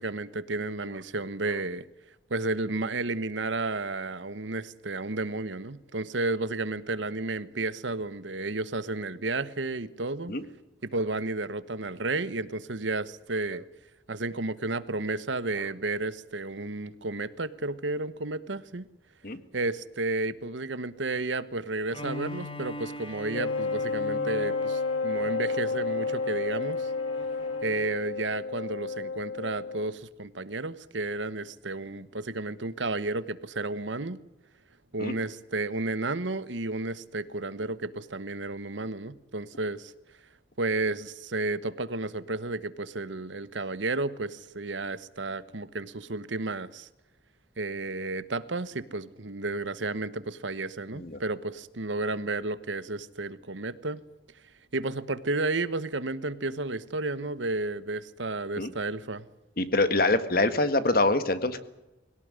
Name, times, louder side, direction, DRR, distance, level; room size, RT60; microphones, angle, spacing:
voice 1, 0.0-1.9 2.3-10.4 10.8-13.6 14.1-18.9 19.5-26.9 27.6-34.2 34.9-39.9 40.6-46.9 47.6-54.0 54.7-59.2, right 2 dB, 80° right, 15 dB, 1.2 m, -32 dB
Bowed string instrument, 21.9-27.9, left 1 dB, 30° left, 1.8 m, -41 dB
Wind instrument woodwind instrument, 23.3-30.0, left 4 dB, 70° left, 0.7 m, -31 dB
voice 2, 59.6-61.6, left 2 dB, 50° left, 11 dB, 1.7 m, -25 dB
22.0 x 17.5 x 9.7 m, 0.96 s
head